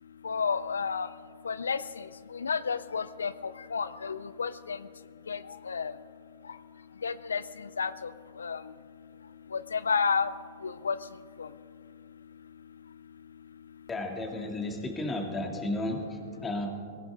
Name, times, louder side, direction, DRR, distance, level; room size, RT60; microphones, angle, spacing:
voice 1, 0.2-1.1 1.5-2.0 2.4-3.3 3.7-4.8 5.3-5.4 5.7-5.9 7.0-7.4 7.8-8.1 8.4-8.6 9.7-10.3 10.6-11.0 11.4-11.5, left 5 dB, 90° left, 15 dB, 0.4 m, -30 dB
voice 2, 13.9-16.7, left 2 dB, 15° left, 2 dB, 2.5 m, -33 dB
19.0 x 17.0 x 3.7 m, 2.2 s
hypercardioid pair, 110°, 0 cm